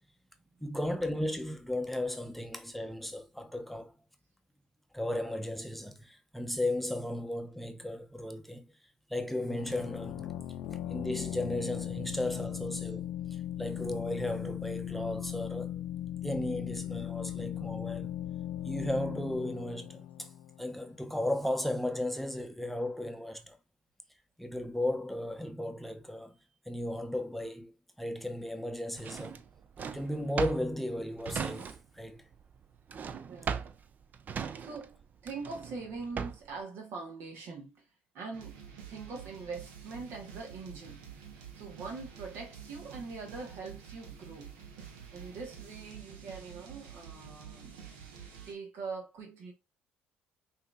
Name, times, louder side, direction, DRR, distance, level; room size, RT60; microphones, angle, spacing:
voice 1, 0.6-3.9 4.9-8.6 9.1-10.3 10.9-15.8 16.2-18.1 18.6-20.3 20.6-23.6 24.4-26.3 26.7-27.7 28.0-29.4 29.9-32.2, left 1 dB, 5° left, 0.7 m, -35 dB
sound 1, 9.5-21.0, left 11 dB, 80° left, 0.6 m, -38 dB
Drawer open or close, 29.0-32.1 32.3-36.6, right 6 dB, 45° right, 0.5 m, -38 dB
voice 2, 33.3-33.7 34.6-37.9 38.1-38.6 38.9-41.1 41.5-44.6 45.1-47.8 48.5-49.5, right 4 dB, 70° right, 1.2 m, -43 dB
sound 2, 38.3-48.5, right 8 dB, 85° right, 1.0 m, -49 dB
5.6 x 2.8 x 2.4 m
supercardioid pair, 75°, 4 cm